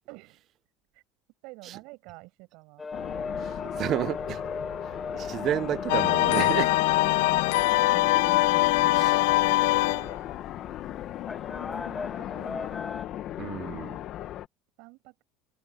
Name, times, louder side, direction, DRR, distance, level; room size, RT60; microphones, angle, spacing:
voice 1, 0.1-0.5 0.9-1.0 1.4-2.9 3.6-4.0 7.0-8.1 8.7-10.2 11.5-12.8 14.8-15.2, right 25 dB, 60° right, 6.6 m, -49 dB
sound 1, 2.8-13.0, left 4 dB, 15° left, 1.7 m, -39 dB
sound 2, 2.9-14.5, left 12 dB, 40° left, 1.4 m, -37 dB
voice 2, 3.8-4.4 5.1-6.8 8.9-9.2 13.4-14.0, right 11 dB, 35° right, 0.7 m, -30 dB
sound 3, 5.9-10.2, left 19 dB, 90° left, 0.6 m, -22 dB
cardioid pair, 165°, 0 cm